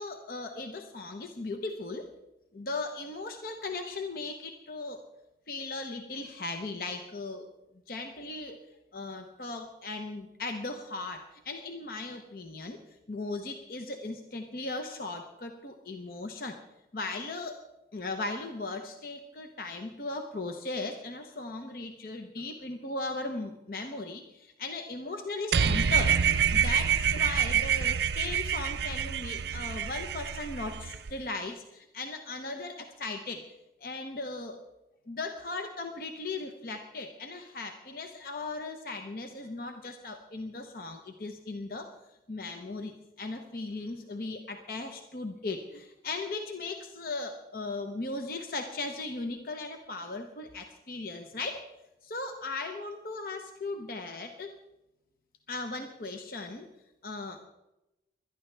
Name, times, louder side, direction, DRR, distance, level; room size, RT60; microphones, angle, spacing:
voice 1, 0.0-2.1 2.5-5.0 5.5-7.5 7.9-8.6 8.9-12.8 13.1-16.6 16.9-17.6 17.9-33.4 33.8-34.6 35.1-41.9 42.3-51.6 52.0-54.5 55.5-56.7 57.0-57.4, left 3 dB, 55° left, 5 dB, 0.8 m, -37 dB
sound 1, 25.5-31.1, right 7 dB, 70° right, 0.5 m, -27 dB
20.5 x 11.5 x 3.3 m, 0.95 s
head